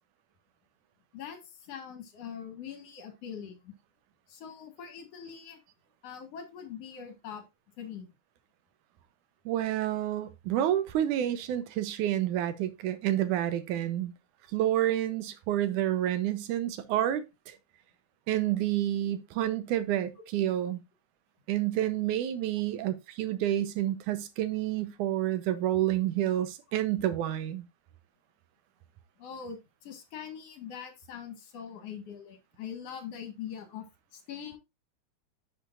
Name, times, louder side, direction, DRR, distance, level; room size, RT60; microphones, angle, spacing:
voice 1, 1.1-3.7 4.3-5.6 6.0-7.4 7.8-8.1 29.2-33.9 34.1-34.6, left 8 dB, 60° left, 2.7 m, -42 dB
voice 2, 9.5-14.1 14.5-17.6 18.3-20.8 21.5-27.7, right 12 dB, 85° right, 2.4 m, -29 dB
10.5 x 6.6 x 2.5 m
omnidirectional pair, 3.4 m